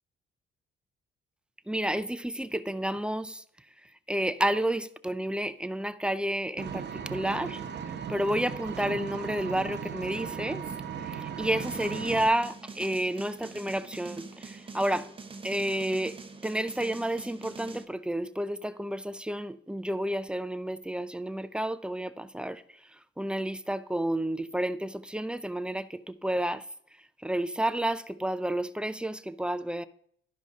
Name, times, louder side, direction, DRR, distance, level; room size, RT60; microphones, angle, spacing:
voice 1, 1.7-3.4 3.8-7.6 8.1-10.6 11.0-15.1 15.4-16.2 16.4-26.6 27.2-29.8, right 1 dB, 5° right, 0.4 m, -31 dB
Vehicle, 6.6-12.3, right 7 dB, 60° right, 0.8 m, -37 dB
sound 1, 11.6-17.9, right 4 dB, 25° right, 0.8 m, -44 dB
12.0 x 5.2 x 3.6 m
cardioid pair, 90°, 20 cm